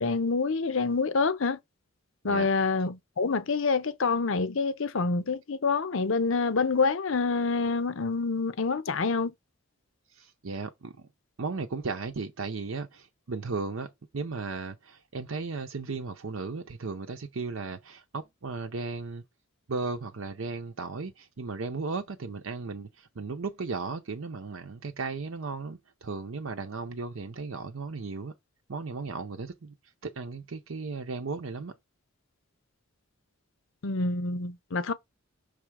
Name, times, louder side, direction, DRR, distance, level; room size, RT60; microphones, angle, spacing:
voice 1, 0.0-1.6 2.2-9.3 33.8-34.9, left 4 dB, 65° left, 0.7 m, -27 dB
voice 2, 10.1-11.1 11.4-19.2 19.7-28.3 28.7-29.8 30.0-31.7, right 4 dB, 70° right, 0.7 m, -35 dB
6.5 x 3.4 x 4.8 m
head